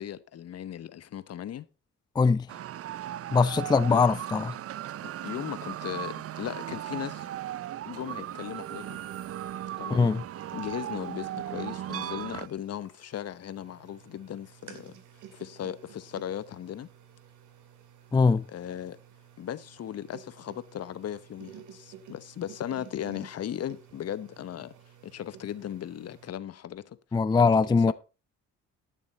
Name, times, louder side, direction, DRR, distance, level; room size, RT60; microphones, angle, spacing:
voice 1, 0.0-1.7 3.8-4.0 5.2-7.3 7.9-9.0 9.8-10.1 10.5-14.9 15.3-16.9 18.5-19.0 19.4-24.7 25.0-27.0 27.4-27.9, left 10 dB, 55° left, 0.8 m, -37 dB
voice 2, 2.2-2.5 3.3-4.6 9.9-10.2 18.1-18.4 27.1-27.9, left 4 dB, 15° left, 0.4 m, -22 dB
sound 1, 2.5-12.5, right 12 dB, 50° right, 0.5 m, -37 dB
sound 2, 8.0-26.3, right 8 dB, 80° right, 2.1 m, -53 dB
12.0 x 7.0 x 4.1 m
cardioid pair, 90°, 30 cm